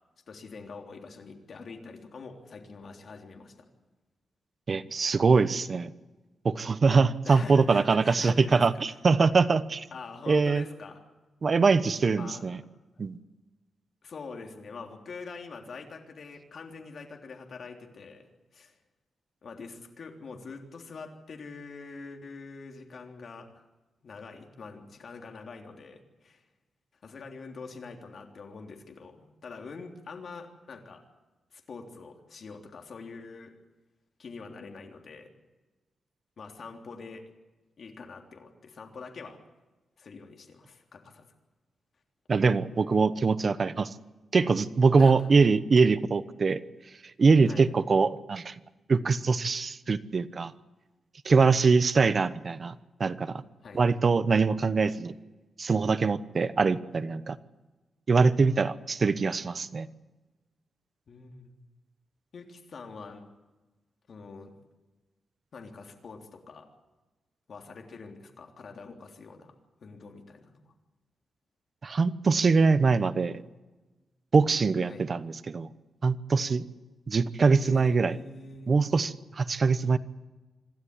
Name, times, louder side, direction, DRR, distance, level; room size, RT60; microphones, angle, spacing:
voice 1, 0.3-3.5 7.2-8.6 9.9-11.0 12.1-12.4 14.0-18.2 18.5-18.7 19.4-23.5 24.0-26.4 27.0-31.0 31.5-33.5 34.2-35.3 36.4-37.2 37.8-39.4 40.0-41.2 45.0-45.3 47.4-47.7 51.4-51.7 53.6-53.8 61.1-61.6 62.3-63.2 64.1-64.5 65.5-66.7 67.5-69.5 69.8-70.7 74.9-75.0 77.6-78.7, left 4 dB, 50° left, 3 dB, 3.4 m, -44 dB
voice 2, 4.7-5.9 6.4-9.9 10.3-10.6 11.4-12.6 13.0-13.2 42.3-43.9 44.3-46.6 47.2-48.5 48.9-50.5 51.2-52.7 53.0-53.4 53.7-55.1 55.6-57.4 58.1-59.9 71.8-73.4 74.3-75.7 76.0-76.7 77.1-78.2 78.7-80.0, right 4 dB, 40° right, 14 dB, 1.0 m, -23 dB
26.0 x 13.0 x 9.7 m, 1.2 s
wide cardioid pair, 140°, 0 cm